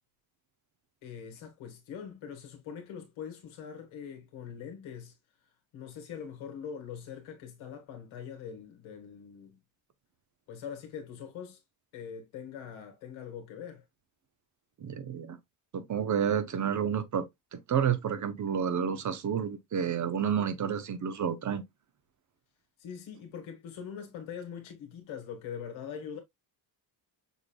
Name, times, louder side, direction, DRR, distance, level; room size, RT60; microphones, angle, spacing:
voice 1, 1.0-5.1 5.7-9.6 10.5-11.6 11.9-13.8 22.8-26.2, left 7 dB, 85° left, 1.8 m, -43 dB
voice 2, 14.8-15.4 15.7-21.6, right 8 dB, 40° right, 0.9 m, -30 dB
6.6 x 3.2 x 2.3 m
cardioid pair, 125°, 46 cm